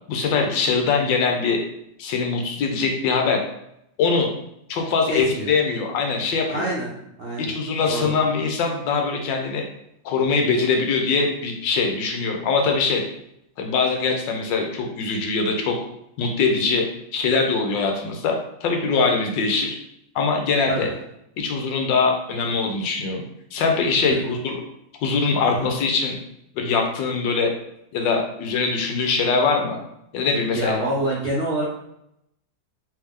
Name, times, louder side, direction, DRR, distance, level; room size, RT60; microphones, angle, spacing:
voice 1, 0.1-1.6 2.0-3.4 4.0-4.3 4.7-6.6 7.4-9.6 10.0-13.1 13.6-15.8 16.2-16.9 17.1-19.8 20.1-20.9 21.4-23.2 23.5-24.6 25.0-26.2 26.5-27.5 27.9-29.8 30.1-30.8, left 4 dB, 80° left, 2 dB, 1.4 m, -22 dB
voice 2, 5.1-5.5 6.5-6.9 7.2-7.6 7.9-8.1 20.7-20.9 24.1-24.2 25.5-25.7 30.5-31.6, right 1 dB, 65° right, -5 dB, 0.5 m, -26 dB
3.4 x 3.1 x 3.5 m, 0.78 s
omnidirectional pair, 2.0 m